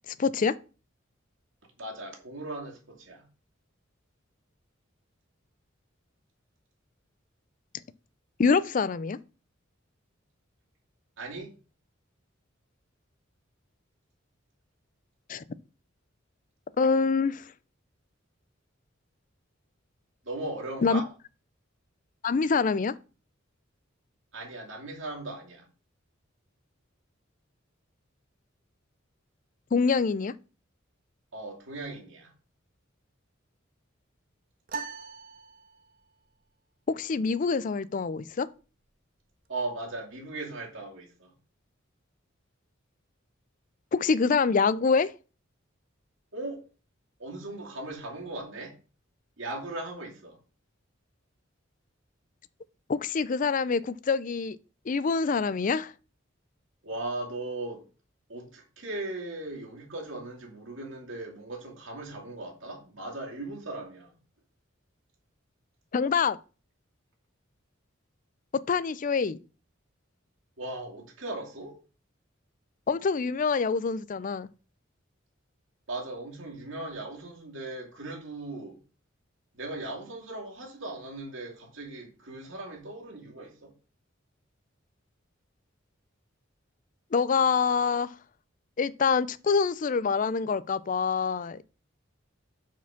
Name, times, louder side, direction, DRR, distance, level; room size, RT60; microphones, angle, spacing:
voice 1, 0.2-0.6 8.4-9.2 15.3-15.4 16.8-17.4 20.8-21.0 22.2-22.9 29.7-30.3 36.9-38.5 43.9-45.1 52.9-54.6 54.9-55.9 65.9-66.4 68.7-69.4 72.9-74.5 87.1-88.1 88.8-91.6, left 5 dB, 40° left, 0.4 m, -25 dB
voice 2, 1.8-3.3 11.2-11.5 20.2-21.1 24.3-25.7 31.3-32.3 39.5-41.3 46.3-46.6 47.2-48.8 49.4-50.4 56.8-57.9 58.3-64.2 70.6-71.8 75.9-78.8 79.5-83.7, right 2 dB, 70° right, 2.5 m, -38 dB
sound 1, 34.7-36.2, right 5 dB, 45° right, 0.7 m, -40 dB
5.9 x 4.6 x 5.8 m
head